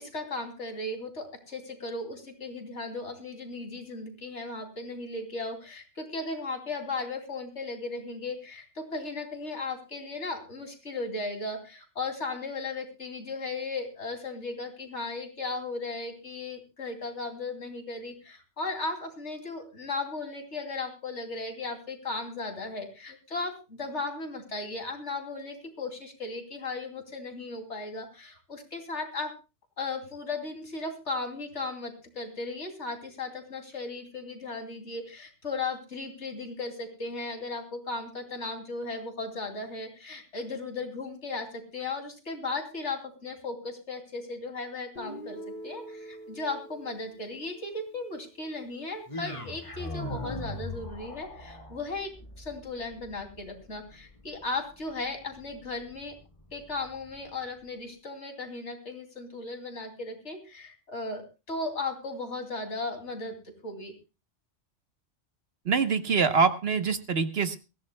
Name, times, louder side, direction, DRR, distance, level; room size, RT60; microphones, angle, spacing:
voice 1, 0.0-29.3 29.8-52.1 52.4-56.1 56.5-63.9, left 3 dB, 75° left, 5 dB, 3.2 m, -36 dB
Guitar, 45.0-48.9, right 1 dB, 45° left, 2.9 m, -45 dB
sound 1, 49.1-57.3, left 1 dB, 25° left, 2.2 m, -42 dB
voice 2, 65.6-67.6, right 5 dB, 60° right, 10 dB, 1.4 m, -24 dB
22.5 x 15.5 x 2.2 m, 0.29 s
omnidirectional pair, 1.2 m